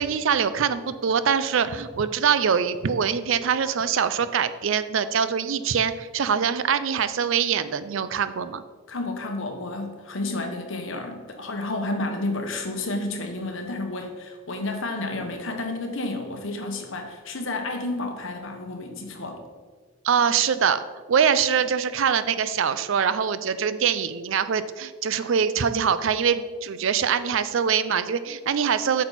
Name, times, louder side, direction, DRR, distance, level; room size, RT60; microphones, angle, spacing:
voice 1, 0.0-8.6 20.0-20.8 21.1-29.0, right 7 dB, 65° right, 13 dB, 0.4 m, -23 dB
voice 2, 8.9-19.4, left 2 dB, 65° left, 4 dB, 1.2 m, -31 dB
8.8 x 6.1 x 4.1 m, 1.5 s
head